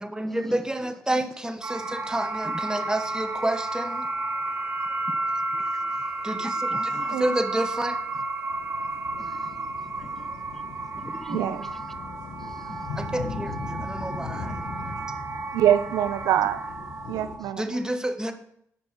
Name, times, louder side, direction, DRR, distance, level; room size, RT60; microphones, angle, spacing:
voice 1, 0.0-4.0 6.2-6.7 7.2-8.0 13.0-14.6 17.6-18.3, right 1 dB, 10° right, 7 dB, 1.1 m, -29 dB
sound 1, 1.6-17.5, right 2 dB, 35° right, 0.8 m, -32 dB
sound 2, 1.7-17.4, left 4 dB, 90° left, 1.0 m, -41 dB
voice 2, 6.7-7.2 9.2-9.7 10.0-10.3 11.0-11.4 12.4-12.8 13.8-13.9 14.2-14.3, left 1 dB, 5° left, 11 dB, 0.3 m, -40 dB
voice 3, 11.3-11.6 15.5-16.6 17.1-17.6, right 11 dB, 85° right, 12 dB, 0.4 m, -24 dB
8.4 x 5.3 x 4.4 m, 0.69 s
supercardioid pair, 55°, 6 cm